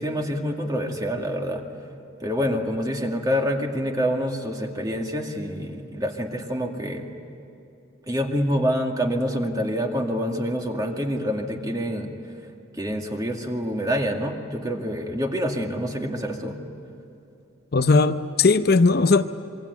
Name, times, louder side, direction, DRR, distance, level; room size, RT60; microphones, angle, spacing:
voice 1, 0.0-1.6 2.2-7.1 8.1-12.1 12.7-16.6, equal, 20° right, 2.2 m, -26 dB
voice 2, 17.7-19.2, left 3 dB, 50° left, 0.7 m, -18 dB
26.5 x 23.5 x 9.4 m
head